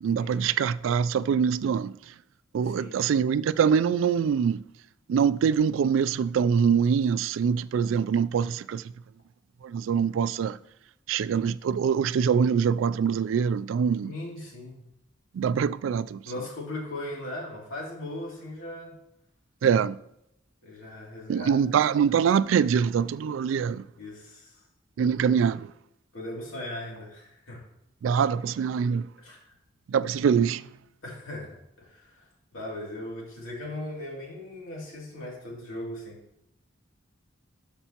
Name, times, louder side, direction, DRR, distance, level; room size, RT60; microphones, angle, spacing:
voice 1, 0.0-1.9 2.5-4.6 5.1-8.8 9.6-10.6 11.1-14.1 15.3-16.2 19.6-20.0 21.3-23.8 25.0-25.7 28.0-29.1 29.9-30.6, right 7 dB, 70° right, 0.3 m, -24 dB
voice 2, 2.6-3.0 14.0-14.8 16.2-19.0 20.6-21.6 24.0-24.6 26.1-27.6 29.2-29.5 31.0-32.3 32.5-36.2, left 1 dB, 85° left, 2.8 m, -38 dB
12.5 x 5.5 x 2.9 m
head